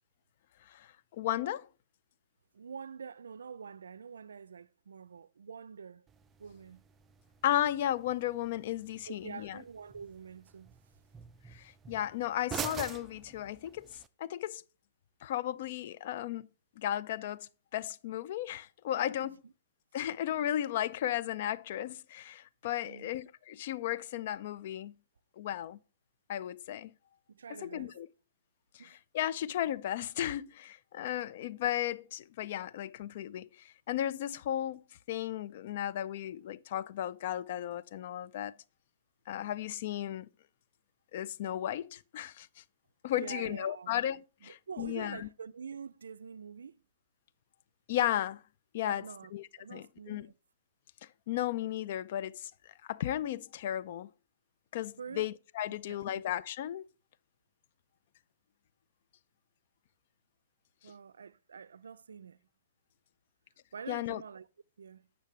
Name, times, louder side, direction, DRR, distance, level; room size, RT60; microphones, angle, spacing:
voice 1, 0.7-1.7 7.4-9.6 11.5-13.9 14.2-14.6 15.2-16.5 16.8-19.4 19.9-25.0 25.4-25.8 26.3-26.9 27.5-28.1 28.7-38.6 39.3-40.3 41.1-42.6 43.0-45.3 47.9-48.4 48.7-49.0 49.3-50.3 51.3-54.1 54.7-56.9 63.9-64.2, left 12 dB, 55° left, 0.4 m, -35 dB
voice 2, 2.5-6.1 6.4-6.8 9.1-10.8 19.2-19.5 22.8-23.1 27.3-27.9 28.8-29.0 43.1-43.9 44.4-46.8 48.8-49.3 49.6-50.3 55.0-55.3 55.9-56.2 60.8-62.4 63.7-64.5 64.8-65.1, right 6 dB, 90° right, 0.4 m, -46 dB
sound 1, 6.1-14.1, right 8 dB, 20° right, 0.3 m, -46 dB
8.3 x 6.1 x 3.2 m
hypercardioid pair, 135°, 0 cm